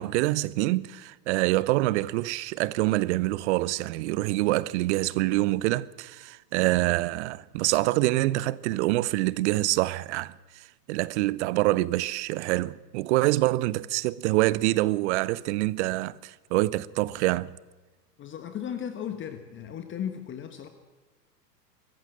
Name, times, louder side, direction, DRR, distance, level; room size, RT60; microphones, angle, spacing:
voice 1, 0.0-17.5, right 18 dB, 45° right, 0.8 m, -26 dB
voice 2, 18.2-20.7, left 9 dB, 25° left, 1.4 m, -36 dB
23.5 x 14.5 x 7.8 m
hypercardioid pair, 105°, 48 cm